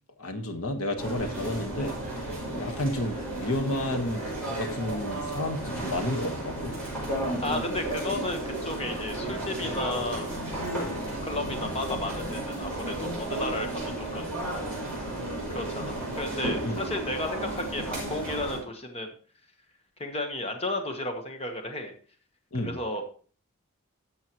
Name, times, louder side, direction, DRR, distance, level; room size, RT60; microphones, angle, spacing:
voice 1, 0.2-2.0 2.5-6.8 10.8-11.1 16.6-16.9 22.5-22.8, left 1 dB, 80° left, 5 dB, 1.3 m, -31 dB
sound 1, 1.0-18.6, right 1 dB, 5° left, 5.7 m, -33 dB
voice 2, 7.4-10.3 11.0-14.3 15.5-19.1 20.0-21.9 22.6-23.0, left 2 dB, 25° left, 5 dB, 1.1 m, -33 dB
12.5 x 7.5 x 3.0 m, 0.41 s
head